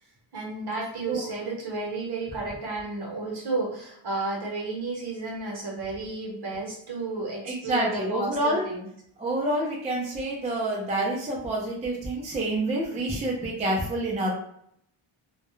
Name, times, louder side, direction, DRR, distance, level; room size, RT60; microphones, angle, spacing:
voice 1, 0.3-8.9, right 3 dB, 50° right, -2 dB, 0.9 m, -32 dB
voice 2, 7.4-8.7 9.2-14.3, right 1 dB, 15° right, -3 dB, 0.4 m, -28 dB
2.3 x 2.1 x 3.0 m, 0.71 s
wide cardioid pair, 155°, 50 cm